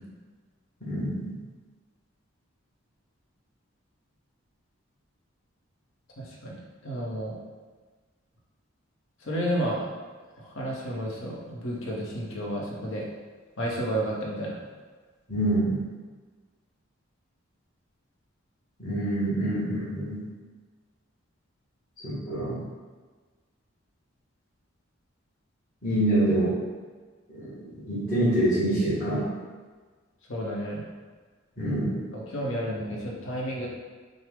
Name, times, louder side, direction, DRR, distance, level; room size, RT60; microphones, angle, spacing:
voice 1, 0.8-1.3 15.3-15.8 18.8-20.2 22.0-22.6 25.8-26.5 27.3-27.5 27.9-29.3 31.6-31.9, right 1 dB, 45° left, -14 dB, 1.4 m, -26 dB
voice 2, 6.2-7.4 9.2-9.9 10.4-13.1 13.6-14.6 30.3-30.8 32.1-33.7, equal, 70° left, -3 dB, 1.0 m, -31 dB
6.2 x 2.1 x 3.6 m, 1.4 s
head